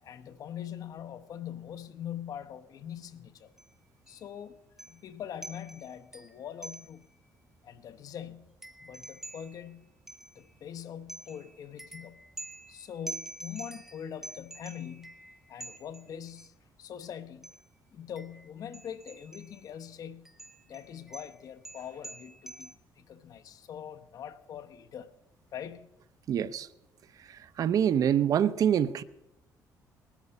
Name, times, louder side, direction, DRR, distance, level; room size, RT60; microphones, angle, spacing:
voice 1, 0.0-3.5 4.1-4.6 4.9-7.1 7.6-8.5 8.8-9.9 10.3-12.2 12.7-15.2 15.5-16.5 16.8-17.5 17.9-20.3 20.7-25.1 25.5-25.9, left 9 dB, 55° left, 1.0 m, -43 dB
sound 1, 3.6-3.8 4.1-4.2 4.8-5.1 5.4-7.2 7.6-7.7 7.9-10.7 11.1-16.5 17.4-17.7 18.2-19.7 20.3-22.7, right 2 dB, 5° right, 1.3 m, -47 dB
voice 2, 26.3-26.7 27.2-29.0, right 9 dB, 55° right, 0.7 m, -26 dB
20.0 x 13.5 x 5.4 m
cardioid pair, 115°, 7 cm